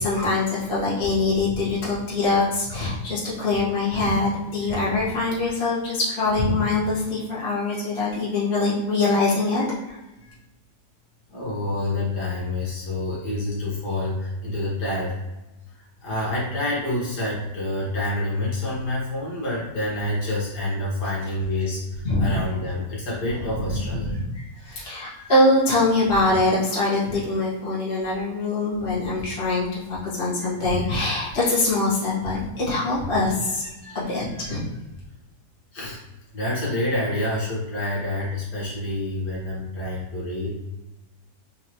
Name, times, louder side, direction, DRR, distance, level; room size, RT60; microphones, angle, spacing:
voice 1, 0.0-10.0 22.0-22.4 24.3-34.6, left 2 dB, 30° left, -8 dB, 1.6 m, -23 dB
voice 2, 11.3-15.2 15.7-24.2 27.1-27.2 33.8-34.0 35.7-36.0 36.3-40.6, left 1 dB, 65° left, -6 dB, 2.0 m, -28 dB
4.8 x 3.3 x 3.0 m, 1.0 s
omnidirectional pair, 1.9 m